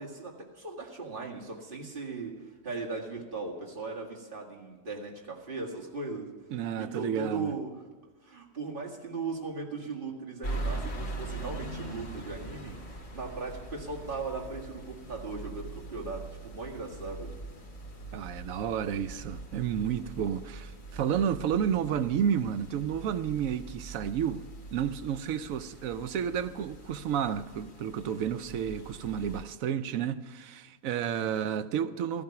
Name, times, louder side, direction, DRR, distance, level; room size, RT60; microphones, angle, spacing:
voice 1, 0.0-6.3 6.8-7.7 8.2-17.3 31.3-31.5, right 3 dB, 40° right, 2.2 m, -38 dB
voice 2, 6.5-7.5 18.1-24.4 24.7-32.2, right 8 dB, 85° right, 1.1 m, -31 dB
sound 1, 10.4-29.4, right 2 dB, 85° left, 2.4 m, -42 dB
16.0 x 14.5 x 5.9 m
omnidirectional pair, 1.4 m